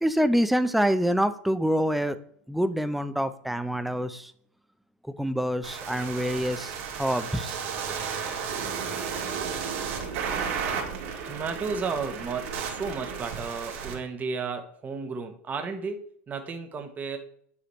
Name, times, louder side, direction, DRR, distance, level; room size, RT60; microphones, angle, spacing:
voice 1, 0.0-2.2 2.5-4.3 5.0-7.6, equal, ahead, 11 dB, 0.5 m, -26 dB
sound 1, 5.6-13.9, right 6 dB, 70° right, 2.3 m, -33 dB
voice 2, 11.2-17.2, right 5 dB, 25° right, 5 dB, 1.0 m, -33 dB
9.6 x 4.9 x 3.1 m, 0.62 s
supercardioid pair, 120°, 7 cm